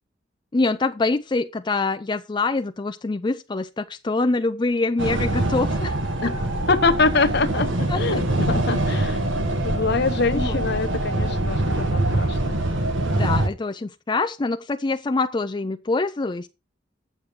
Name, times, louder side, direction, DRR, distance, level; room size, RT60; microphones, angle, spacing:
voice 1, 0.5-5.9 6.2-6.3 7.9-8.0 10.4-10.6 13.1-16.5, left 3 dB, 25° left, 0.4 m, -25 dB
sound 1, 5.0-13.5, right 1 dB, 80° right, 1.6 m, -24 dB
voice 2, 6.2-9.2 9.6-12.7, left 4 dB, 60° left, 1.0 m, -24 dB
7.9 x 7.2 x 4.6 m
head